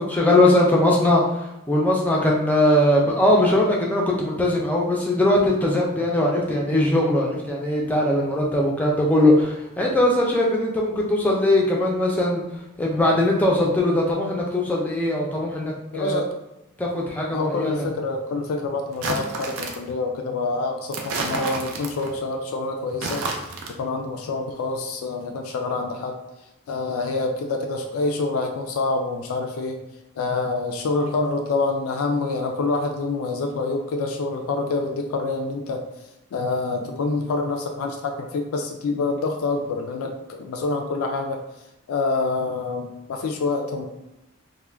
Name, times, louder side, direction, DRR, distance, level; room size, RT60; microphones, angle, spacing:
voice 1, 0.0-12.4 12.8-16.2 16.8-17.9, left 1 dB, 5° left, -2 dB, 0.4 m, -20 dB
voice 2, 15.9-16.3 17.3-26.2 26.7-29.8 30.2-35.8 36.3-41.4 41.9-43.9, left 3 dB, 85° left, 3 dB, 0.3 m, -26 dB
sound 1, 18.9-19.9 20.9-22.2 22.9-23.8, right 3 dB, 75° right, 0.4 m, -30 dB
2.3 x 2.1 x 3.3 m, 0.93 s
head